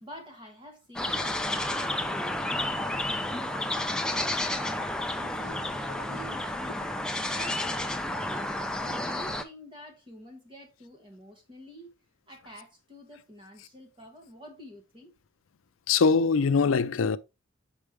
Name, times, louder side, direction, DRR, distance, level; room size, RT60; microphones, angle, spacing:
voice 1, 0.0-3.1 3.5-11.9 12.3-15.1, equal, 25° right, 1.5 m, -47 dB
sound 1, 1.0-9.4, left 1 dB, 5° left, 0.5 m, -31 dB
voice 2, 15.9-17.2, left 5 dB, 80° left, 0.5 m, -22 dB
6.6 x 4.9 x 3.3 m
head